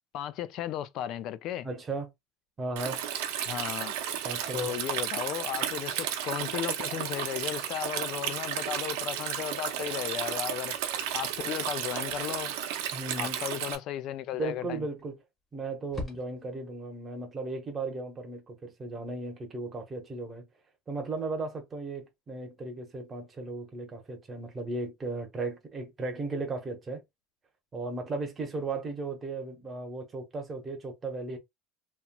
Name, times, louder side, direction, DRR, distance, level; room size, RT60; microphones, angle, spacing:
voice 1, 0.1-1.7 3.4-3.9 4.5-10.8 11.1-12.5 13.2-14.8, left 11 dB, 45° left, 0.3 m, -35 dB
voice 2, 1.6-2.1 2.6-3.0 4.2-4.7 12.9-13.4 14.4-15.2 15.5-20.5 20.9-27.0 27.7-31.4, right 3 dB, 15° right, 0.8 m, -36 dB
Stream, 2.8-13.8, right 10 dB, 85° right, 0.7 m, -33 dB
sound 1, 12.1-12.6 14.7-15.1 15.4-15.5 15.9-16.7, left 2 dB, 15° left, 1.0 m, -42 dB
2.9 x 2.9 x 2.2 m
cardioid pair, 170°, 0 cm